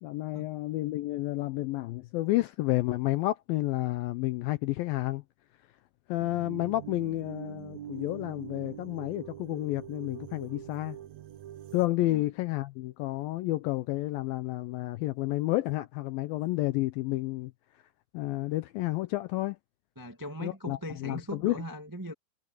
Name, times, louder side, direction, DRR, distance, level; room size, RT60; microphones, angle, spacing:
voice 1, 0.0-5.2 6.1-11.0 11.7-17.5 18.1-19.6 20.4-21.6, left 17 dB, 80° left, 2.1 m, -30 dB
sound 1, 6.2-11.9, right 11 dB, 75° right, 1.6 m, -44 dB
voice 2, 19.9-22.1, equal, 25° right, 0.4 m, -39 dB
omnidirectional pair, 4.7 m